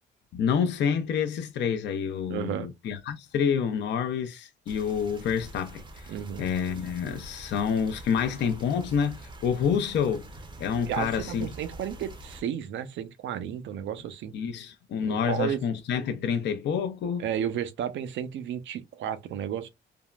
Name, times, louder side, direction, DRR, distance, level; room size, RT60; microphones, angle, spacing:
voice 1, 0.3-10.3 10.6-11.5 14.3-17.3, left 7 dB, 60° left, 0.5 m, -28 dB
voice 2, 2.3-2.7 6.1-6.5 10.9-14.3 15.0-15.6 17.2-19.7, right 9 dB, 70° right, 0.6 m, -32 dB
sound 1, 4.7-12.4, right 1 dB, 25° right, 0.6 m, -45 dB
3.4 x 2.0 x 2.3 m
cardioid pair, 90°, 20 cm